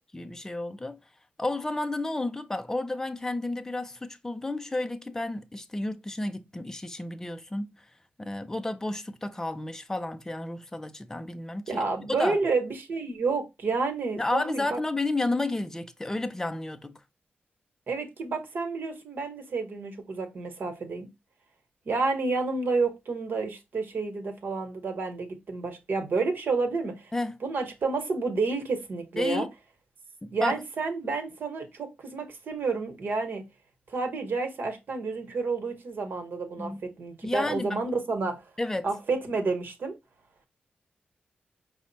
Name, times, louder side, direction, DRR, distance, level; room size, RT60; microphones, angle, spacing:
voice 1, 0.1-1.0 1.4-7.9 8.2-11.8 12.1-12.4 14.2-17.0 27.1-27.4 29.2-29.5 30.2-30.6 36.6-36.8 37.2-37.8 38.6-38.9, left 2 dB, 15° left, 0.4 m, -31 dB
voice 2, 11.7-14.8 17.9-21.1 21.8-27.1 27.4-29.5 30.3-33.4 33.9-38.5 38.8-39.9, right 4 dB, 65° right, 1.2 m, -30 dB
5.1 x 2.1 x 4.0 m
cardioid pair, 75°, 4 cm